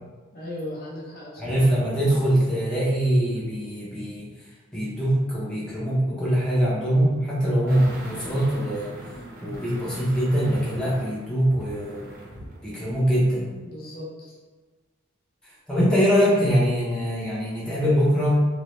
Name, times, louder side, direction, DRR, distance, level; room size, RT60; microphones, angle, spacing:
voice 1, 0.3-1.6 13.6-14.4, left 1 dB, 50° left, -5 dB, 0.5 m, -37 dB
voice 2, 1.4-4.3 4.7-8.9 9.4-12.1 12.6-13.5 15.7-18.4, equal, 5° left, -9 dB, 0.6 m, -23 dB
sound 1, 7.7-12.6 12.9-13.0, equal, 45° right, 0.6 m, -39 dB
2.2 x 2.0 x 2.9 m, 1.3 s
head